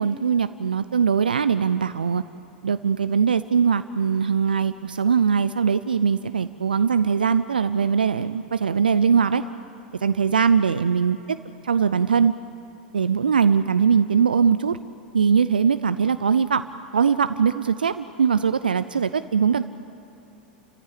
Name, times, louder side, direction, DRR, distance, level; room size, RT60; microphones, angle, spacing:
voice 1, 0.0-2.2 2.6-9.4 10.0-11.2 11.6-12.3 12.9-14.8 15.1-16.6 16.9-19.6, right 6 dB, 80° right, 13 dB, 0.5 m, -21 dB
29.5 x 15.0 x 8.6 m, 2.7 s
figure-of-eight pair, 90°, 5 cm